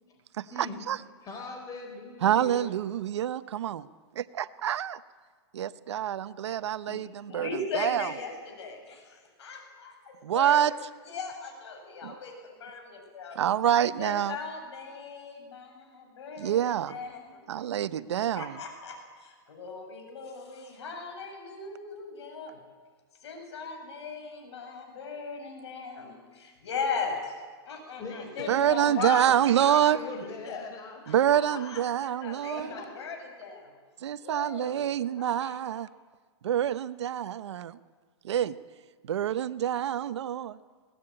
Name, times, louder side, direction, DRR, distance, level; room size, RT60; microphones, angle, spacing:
voice 1, 0.4-1.0 2.2-3.9 4.1-5.0 5.5-7.5 7.7-8.1 10.2-10.7 12.0-12.1 13.3-14.4 16.4-17.0 17.5-18.6 28.5-30.0 31.1-32.7 34.0-35.9 36.4-37.8 38.2-38.6 39.0-40.6, right 10 dB, 85° right, 14 dB, 0.9 m, -27 dB
voice 2, 1.2-2.7 28.0-31.0 31.3-31.6 32.5-33.1, left 3 dB, 25° left, 3 dB, 3.9 m, -41 dB
voice 3, 6.9-10.6 11.1-13.4 14.0-17.5 18.3-22.6 23.2-27.3 27.7-30.6 31.1-31.2 31.5-33.7 34.2-34.8 35.2-35.6, left 4 dB, 80° left, 3 dB, 7.8 m, -38 dB
21.5 x 18.0 x 8.9 m, 1.5 s
hypercardioid pair, 140°, 14 cm